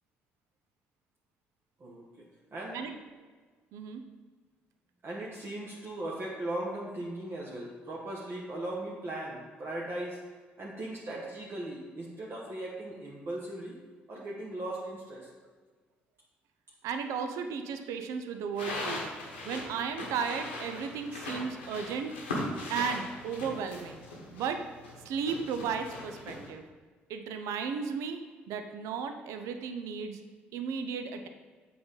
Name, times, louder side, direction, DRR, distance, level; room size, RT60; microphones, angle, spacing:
voice 1, 1.8-2.9 5.0-10.3 10.6-13.8 14.1-15.3, right 1 dB, 40° right, -3 dB, 1.0 m, -38 dB
voice 2, 3.7-4.0 16.8-19.0 19.4-22.2 22.7-24.0 24.3-24.6 25.1-26.6 27.1-28.2 28.5-30.2 30.5-31.3, right 6 dB, 65° right, 7 dB, 0.5 m, -34 dB
sound 1, 18.6-26.5, left 2 dB, 90° left, 1.1 m, -39 dB
7.6 x 4.1 x 3.9 m, 1.4 s
hypercardioid pair, 50°, 6 cm